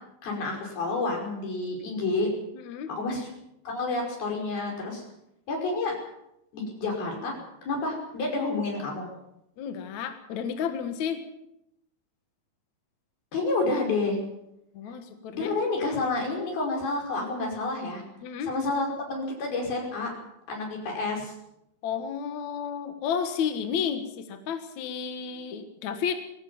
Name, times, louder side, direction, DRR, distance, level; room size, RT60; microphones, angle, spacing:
voice 1, 0.2-2.3 2.9-3.3 3.7-5.0 5.5-5.9 6.5-7.3 7.6-9.1 13.3-14.2 15.3-18.0 18.4-20.1 20.5-21.3, left 3 dB, 90° left, 1 dB, 7.3 m, -29 dB
voice 2, 2.5-2.9 9.6-11.2 14.7-15.5 18.2-18.5 21.8-26.1, left 7 dB, 60° left, 7 dB, 2.6 m, -32 dB
21.5 x 18.0 x 7.2 m, 0.82 s
omnidirectional pair, 4.2 m